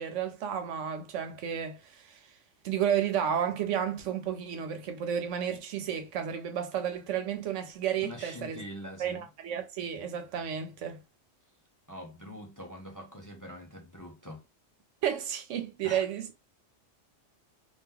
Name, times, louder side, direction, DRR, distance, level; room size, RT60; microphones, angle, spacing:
voice 1, 0.0-2.2 2.6-8.6 9.0-11.0 15.0-16.3, right 9 dB, 85° right, 1.1 m, -32 dB
voice 2, 8.0-9.3 11.9-14.4 15.8-16.1, equal, 20° left, 0.6 m, -44 dB
2.9 x 2.6 x 3.7 m
omnidirectional pair, 1.2 m